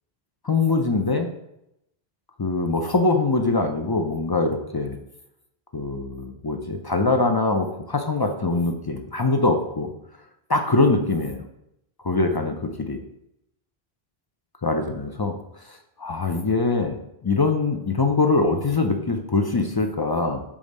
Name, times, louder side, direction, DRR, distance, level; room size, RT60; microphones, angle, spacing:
voice 1, 0.4-1.3 2.4-5.0 5.7-9.9 10.5-11.4 12.0-13.0 14.6-15.4 16.0-17.0 17.2-20.4, left 3 dB, 40° left, 5 dB, 0.3 m, -23 dB
5.1 x 3.5 x 5.3 m, 0.82 s
omnidirectional pair, 1.0 m